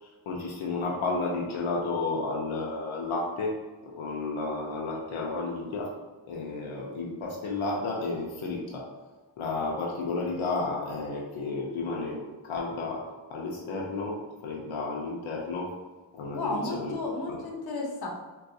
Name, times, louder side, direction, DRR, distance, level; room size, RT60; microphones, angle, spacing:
voice 1, 0.0-3.6 4.0-5.9 6.3-8.9 9.4-15.7 16.1-16.9 17.3-17.4, left 3 dB, 85° left, -2 dB, 0.6 m, -32 dB
voice 2, 16.3-18.1, left 2 dB, 50° left, -2 dB, 0.9 m, -33 dB
3.8 x 2.3 x 2.6 m, 1.2 s
cardioid pair, 60°, 46 cm